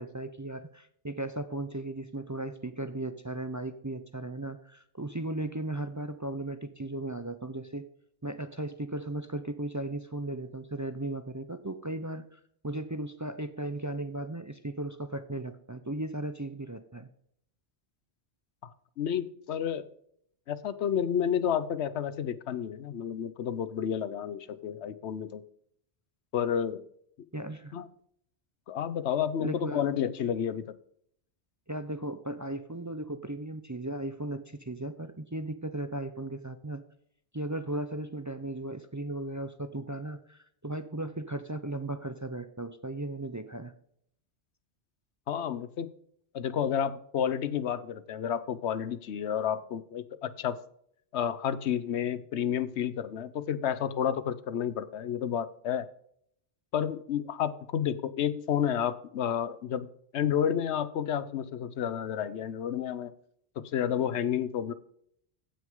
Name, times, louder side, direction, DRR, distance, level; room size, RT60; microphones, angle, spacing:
voice 1, 0.0-7.9 8.2-17.1 27.3-27.7 29.4-29.9 31.7-36.8 37.3-43.7, right 1 dB, 25° right, 10 dB, 0.5 m, -36 dB
voice 2, 19.0-19.9 20.5-25.4 26.3-26.8 27.7-27.9 28.7-30.7 45.3-45.9 46.3-50.6 51.1-55.9 56.7-59.9 60.1-63.1 63.6-64.7, left 9 dB, 80° left, 15 dB, 1.0 m, -30 dB
15.5 x 6.2 x 3.7 m, 0.68 s
omnidirectional pair, 1.1 m